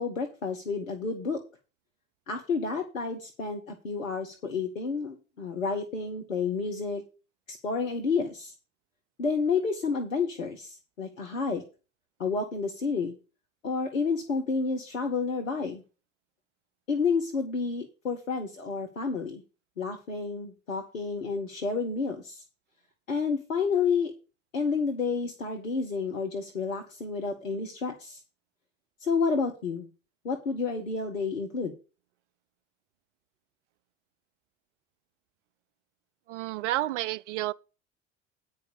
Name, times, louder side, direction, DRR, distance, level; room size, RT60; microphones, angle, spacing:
voice 1, 0.0-1.4 2.3-7.0 7.5-8.5 9.2-11.6 12.2-13.1 13.6-15.8 16.9-19.4 19.8-22.4 23.1-24.1 24.5-28.2 29.0-29.9 30.2-31.7, left 5 dB, 80° left, 1.1 m, -30 dB
voice 2, 36.3-37.5, right 15 dB, 65° right, 0.5 m, -30 dB
9.2 x 5.3 x 6.7 m
figure-of-eight pair, 60°, 39 cm